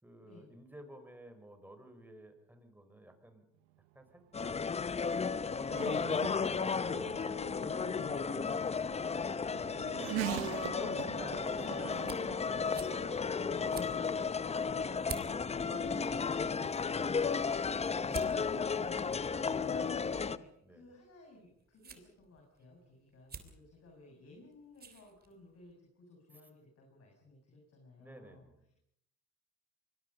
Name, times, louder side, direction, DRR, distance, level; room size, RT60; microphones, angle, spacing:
voice 1, 0.0-3.4 3.9-4.6 5.5-9.9 10.8-12.2 12.5-13.1 13.8-14.7 15.1-18.7 20.6-20.9 28.0-28.6, right 1 dB, 5° right, 7 dB, 5.1 m, -53 dB
Race car auto racing / Accelerating revving vroom, 3.7-20.0, right 19 dB, 85° right, 0.8 m, -46 dB
sound 1, 4.3-20.4, left 5 dB, 20° left, 0.7 m, -34 dB
voice 2, 10.2-11.2 15.5-15.9 19.3-28.5, left 2 dB, 55° left, 1 dB, 6.7 m, -57 dB
sound 2, 11.8-25.7, right 5 dB, 30° right, 3.4 m, -52 dB
25.0 x 21.5 x 5.5 m, 0.72 s
supercardioid pair, 85°, 30 cm